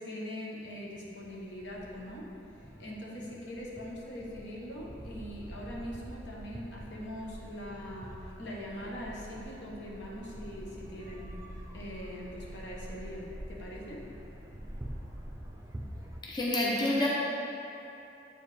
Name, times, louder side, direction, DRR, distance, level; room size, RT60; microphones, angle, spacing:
voice 1, 0.0-2.3 2.6-11.4 11.7-14.0, equal, 70° left, -4 dB, 1.1 m, -42 dB
sound 1, 0.6-16.2, right 1 dB, 15° right, 0.5 m, -46 dB
voice 2, 16.2-17.1, left 1 dB, 25° left, -5 dB, 0.6 m, -28 dB
7.7 x 4.8 x 3.3 m, 3.0 s
head